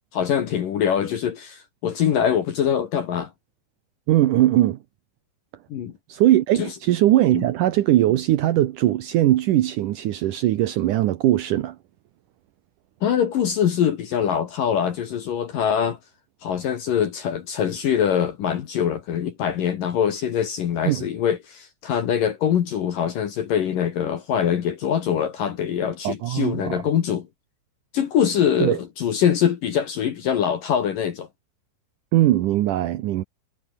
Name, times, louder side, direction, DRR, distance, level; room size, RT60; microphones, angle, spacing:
voice 1, 0.1-3.3 5.7-5.9 6.6-6.7 7.3-7.5 13.0-16.0 16.4-27.3 27.9-31.3, left 8 dB, 60° left, 2.9 m, -23 dB
voice 2, 4.1-4.8 6.1-11.8 20.9-21.0 26.0-26.8 28.6-28.8 32.1-33.2, right 14 dB, 80° right, 1.9 m, -20 dB
omnidirectional pair, 5.2 m